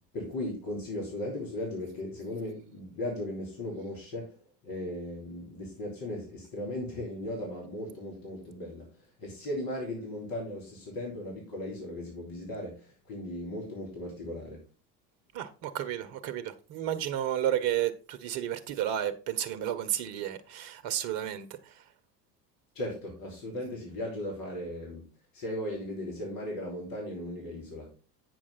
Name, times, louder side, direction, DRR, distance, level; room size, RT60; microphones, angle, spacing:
voice 1, 0.1-4.3 4.6-8.9 9.2-14.6 22.8-25.1 25.3-27.9, left 1 dB, 45° left, 3.5 m, -37 dB
voice 2, 15.3-21.8, right 11 dB, 55° right, 1.1 m, -32 dB
8.5 x 6.2 x 4.0 m
hypercardioid pair, 75°, 50 cm